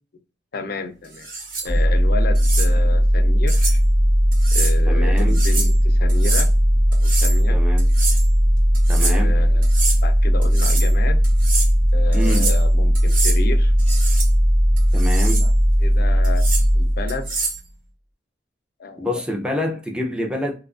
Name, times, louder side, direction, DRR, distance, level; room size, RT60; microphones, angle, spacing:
voice 1, 0.5-1.3 1.6-3.8 4.5-6.5 6.9-7.6 9.0-9.7 10.0-11.2 11.9-13.7 15.4-15.5 15.8-16.5 16.7-17.3 18.8-19.1, left 3 dB, 55° left, 0.5 m, -31 dB
sound 1, 1.2-1.7 2.3-2.7 3.5-3.8 4.3-4.7 5.2-5.7 6.1-6.5 6.9-7.4 7.8-8.3 8.7-9.2 9.6-10.0 10.4-10.9 11.2-11.7 12.1-12.6 12.9-13.4 13.8-14.3 14.8-15.5 16.2-16.6 17.1-17.6, right 3 dB, 50° right, 1.0 m, -27 dB
sound 2, 1.6-17.4, equal, 70° right, 0.6 m, -17 dB
voice 2, 4.8-5.4 7.5-7.9 8.9-9.3 12.1-12.5 14.9-15.5 19.0-20.5, left 1 dB, 5° right, 0.5 m, -26 dB
2.7 x 2.3 x 2.4 m
head